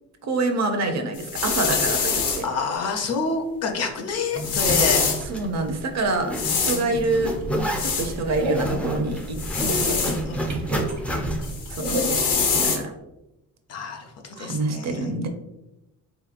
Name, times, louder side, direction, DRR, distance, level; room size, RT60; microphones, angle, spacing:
voice 1, 0.2-2.4 5.3-6.3 6.6-7.3 7.8-9.4 9.7-10.0 10.7-10.8 11.7-12.9 14.4-15.3, right 2 dB, 50° right, 5 dB, 0.5 m, -26 dB
sound 1, 1.2-2.4 4.4-5.2 6.3-6.8 7.8-8.1 9.4-10.2 11.4-12.8, left 5 dB, 75° left, 0.9 m, -24 dB
voice 2, 1.7-5.0 6.7-7.2 9.6-10.6 13.7-15.1, left 4 dB, 50° left, 3 dB, 0.6 m, -29 dB
Zipper (clothing), 4.3-11.6, right 1 dB, 5° left, 0.3 m, -30 dB
sound 2, 7.2-12.3, right 1 dB, 75° right, 0.9 m, -34 dB
3.5 x 2.8 x 2.4 m, 0.92 s
cardioid pair, 130°, 34 cm